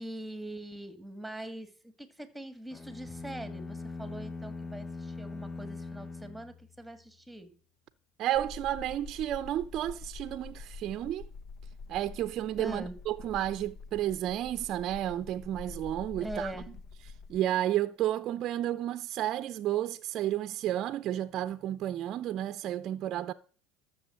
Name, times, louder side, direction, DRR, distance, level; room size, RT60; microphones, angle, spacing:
voice 1, 0.0-7.5 12.6-13.0 16.2-16.8, right 1 dB, 5° right, 2.0 m, -42 dB
sound 1, 2.7-7.1, left 3 dB, 20° left, 0.7 m, -41 dB
voice 2, 8.2-11.3 11.9-16.5 17.3-23.3, right 12 dB, 50° right, 0.6 m, -32 dB
sound 2, 8.3-17.4, left 4 dB, 45° left, 0.9 m, -46 dB
13.0 x 7.0 x 7.8 m
supercardioid pair, 105°, 0 cm